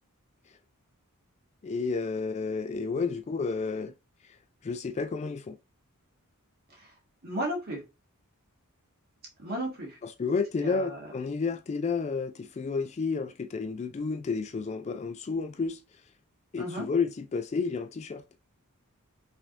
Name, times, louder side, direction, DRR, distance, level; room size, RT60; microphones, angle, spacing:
voice 1, 1.6-3.9 4.2-4.4 4.6-5.6 10.0-16.0 16.5-18.2, left 4 dB, 30° left, 0.3 m, -31 dB
voice 2, 7.2-7.8 9.4-10.0 10.6-11.0 16.6-16.9, right 1 dB, 45° right, 1.7 m, -34 dB
5.8 x 3.3 x 2.5 m
head